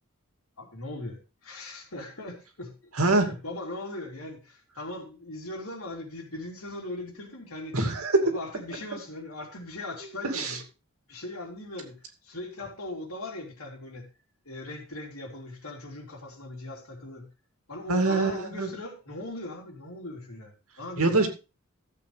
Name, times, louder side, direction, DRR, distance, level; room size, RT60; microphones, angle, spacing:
voice 1, 0.6-2.8 3.2-7.8 8.2-10.6 11.1-14.1 14.5-17.3 17.7-21.2, left 2 dB, 80° left, 3.6 m, -39 dB
voice 2, 3.0-3.3 7.7-8.3 10.2-10.6 17.9-18.7 21.0-21.3, right 2 dB, 85° right, 2.5 m, -24 dB
14.5 x 7.9 x 3.4 m
head